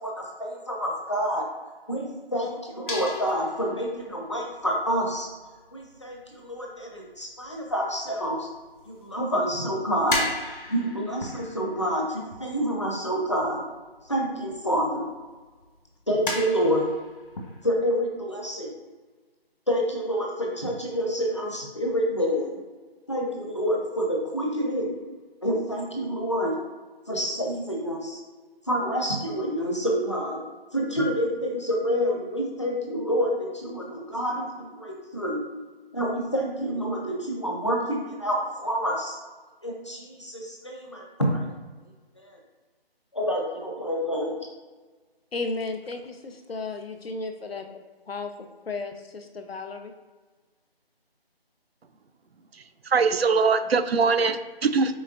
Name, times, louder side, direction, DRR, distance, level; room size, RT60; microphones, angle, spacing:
voice 1, 0.0-1.5 1.9-5.3 5.7-8.5 8.9-10.3 10.7-13.6 14.0-15.0 16.1-16.9 17.6-18.7 19.7-22.6 23.1-24.9 25.4-26.5 27.1-28.2 28.7-30.4 30.7-35.4 35.9-39.2 39.6-41.5 42.2-42.4 43.1-44.3, equal, 30° left, 0 dB, 0.7 m, -28 dB
sound 1, 2.9-6.2 7.2-7.7 8.0-9.3 9.6-14.9 15.2-15.3 15.5-15.8 16.2-17.7, left 2 dB, 55° left, 1.3 m, -35 dB
voice 2, 45.3-47.7 48.1-48.3 48.7-49.9, left 3 dB, 70° left, 6 dB, 0.7 m, -34 dB
voice 3, 52.9-55.0, right 4 dB, 75° right, 10 dB, 0.5 m, -22 dB
6.2 x 3.5 x 2.4 m, 1.3 s
figure-of-eight pair, 175°, 31 cm